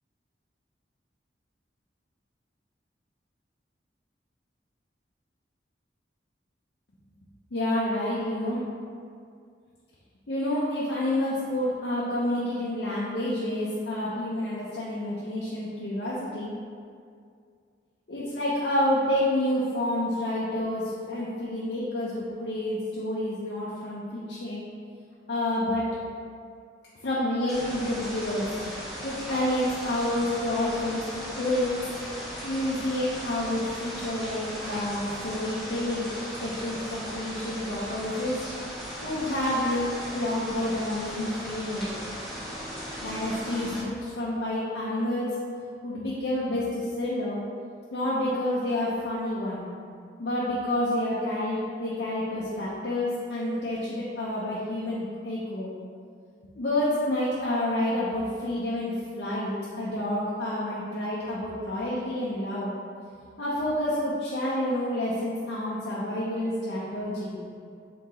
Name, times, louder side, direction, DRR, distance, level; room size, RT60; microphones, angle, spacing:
voice 1, 7.5-8.6 10.3-16.5 18.1-24.6 25.3-25.9 27.0-28.5 29.0-31.8 32.4-38.4 39.0-41.9 43.0-45.4 45.8-47.4 47.9-49.7 50.2-55.7 56.6-62.7 63.4-67.4, left 1 dB, 70° left, -8 dB, 0.6 m, -29 dB
sound 1, 27.5-43.8, equal, ahead, 0.9 m, -37 dB
3.8 x 3.7 x 2.9 m, 2.2 s
head